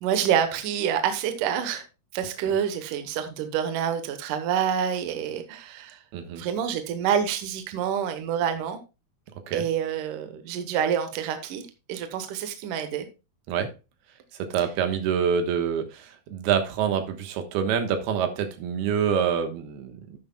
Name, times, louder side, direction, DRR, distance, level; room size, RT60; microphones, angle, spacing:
voice 1, 0.0-1.8 2.1-6.0 6.3-8.8 9.5-11.6 11.9-13.1, right 8 dB, 70° right, 2.3 m, -27 dB
voice 2, 14.3-20.2, right 7 dB, 85° right, 3.3 m, -26 dB
11.5 x 9.6 x 2.3 m
omnidirectional pair, 4.4 m